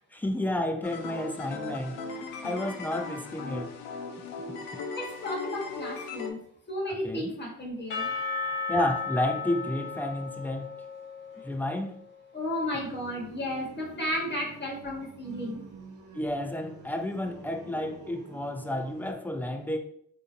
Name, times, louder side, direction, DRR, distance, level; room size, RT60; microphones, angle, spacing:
voice 1, 0.0-3.7 6.9-7.3 8.4-10.7 11.4-12.0 16.1-19.8, left 1 dB, 5° left, 0.4 m, -31 dB
sound 1, 0.8-6.3, left 4 dB, 90° left, 0.5 m, -38 dB
voice 2, 4.9-6.4 6.7-8.1 12.3-15.6, left 1 dB, 30° left, 1.1 m, -33 dB
Percussion / Church bell, 7.9-11.9, left 4 dB, 55° left, 1.0 m, -35 dB
sound 2, 12.7-19.1, right 4 dB, 50° right, 0.7 m, -48 dB
3.6 x 2.7 x 2.5 m
hypercardioid pair, 50°, 37 cm